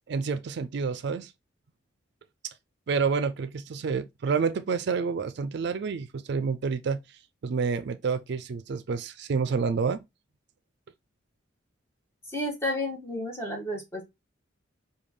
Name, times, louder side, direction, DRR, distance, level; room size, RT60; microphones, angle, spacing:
voice 1, 0.1-1.3 2.9-7.0 7.4-10.0, right 5 dB, 55° right, 0.4 m, -28 dB
voice 2, 12.3-14.0, left 1 dB, 15° left, 1.1 m, -31 dB
4.9 x 2.3 x 3.5 m
head